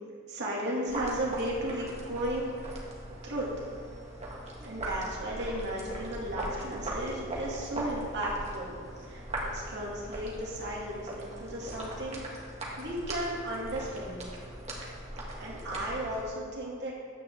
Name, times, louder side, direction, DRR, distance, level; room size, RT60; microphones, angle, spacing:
voice 1, 0.3-2.5 3.2-3.5 4.6-9.2 9.5-12.4 12.8-14.3 15.4-16.9, right 1 dB, 60° right, -4 dB, 2.5 m, -35 dB
sound 1, 0.9-16.3, right 1 dB, 35° right, 1.8 m, -39 dB
9.9 x 5.3 x 7.4 m, 2.1 s
head